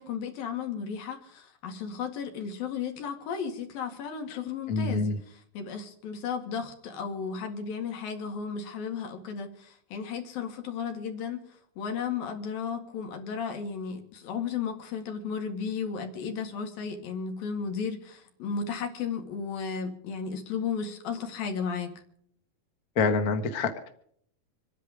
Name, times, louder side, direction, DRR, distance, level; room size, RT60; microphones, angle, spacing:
voice 1, 0.0-11.4 11.8-21.9, left 6 dB, 80° left, 4 dB, 3.9 m, -34 dB
voice 2, 4.7-5.2 23.0-23.9, left 4 dB, 40° left, 6 dB, 1.3 m, -26 dB
26.0 x 10.0 x 5.0 m, 0.65 s
omnidirectional pair, 4.1 m